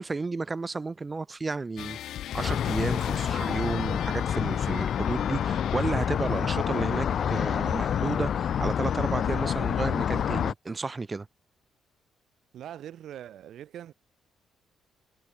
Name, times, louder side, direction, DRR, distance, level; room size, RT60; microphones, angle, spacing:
voice 1, 0.0-2.0 2.3-11.3, right 3 dB, 25° right, 1.2 m, -32 dB
sound 1, 1.8-6.2, left 12 dB, 75° left, 1.6 m, -39 dB
sound 2, 2.4-10.5, left 8 dB, 60° left, 0.5 m, -28 dB
Keyboard (musical), 7.1-9.4, left 1 dB, 5° left, 1.8 m, -47 dB
voice 2, 12.5-13.9, right 11 dB, 70° right, 1.5 m, -42 dB
cardioid pair, 90°, 0 cm